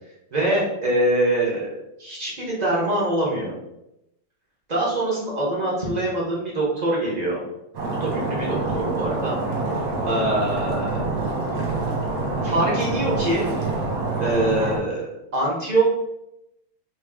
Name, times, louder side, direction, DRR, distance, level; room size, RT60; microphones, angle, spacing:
voice 1, 0.3-1.7 2.0-3.5 4.7-7.4 8.0-9.4 10.0-11.0 12.4-13.5 14.2-15.0 15.3-15.9, right 1 dB, 40° right, -4 dB, 0.6 m, -24 dB
Stream, 7.7-14.8, right 2 dB, 60° right, 1.2 m, -26 dB
3.0 x 3.0 x 3.6 m, 0.87 s
omnidirectional pair, 2.1 m